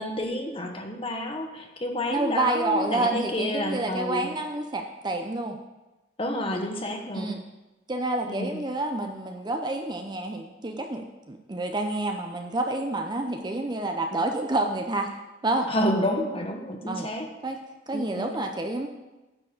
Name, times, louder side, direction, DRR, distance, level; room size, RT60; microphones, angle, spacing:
voice 1, 0.0-4.3 6.2-7.3 8.3-8.6 15.7-17.3 17.9-18.3, left 1 dB, 25° left, 4 dB, 1.0 m, -29 dB
voice 2, 2.1-5.6 7.1-7.4 7.9-15.1 15.4-15.7 16.9-17.1 17.4-17.6 17.9-18.9, right 2 dB, 20° right, 4 dB, 0.6 m, -28 dB
9.8 x 4.5 x 7.6 m, 1.1 s
head